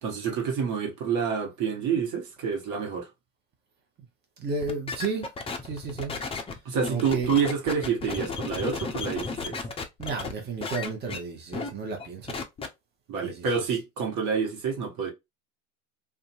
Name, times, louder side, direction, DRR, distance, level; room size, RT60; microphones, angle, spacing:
voice 1, 0.0-3.1 6.6-9.6 13.1-15.1, right 6 dB, 50° right, 1.1 m, -28 dB
voice 2, 4.4-5.3 5.6-6.2 6.9-7.3 10.0-12.4 13.2-13.6, right 4 dB, 25° right, 0.9 m, -33 dB
sound 1, 4.6-10.3 10.6-11.2 11.5-11.7 12.0-12.7, left 4 dB, 15° left, 0.5 m, -34 dB
2.6 x 2.4 x 2.5 m
hypercardioid pair, 80°, 39 cm